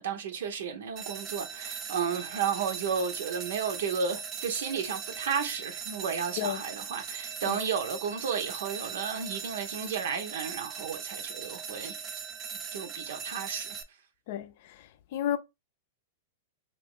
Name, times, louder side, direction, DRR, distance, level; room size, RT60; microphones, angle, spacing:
voice 1, 0.0-12.0 12.7-13.8, right 6 dB, 75° right, 0.8 m, -33 dB
sound 1, 1.0-13.8, right 6 dB, 30° right, 0.5 m, -40 dB
voice 2, 14.3-15.4, left 11 dB, 60° left, 0.5 m, -33 dB
2.9 x 2.5 x 3.7 m
hypercardioid pair, 130°, 0 cm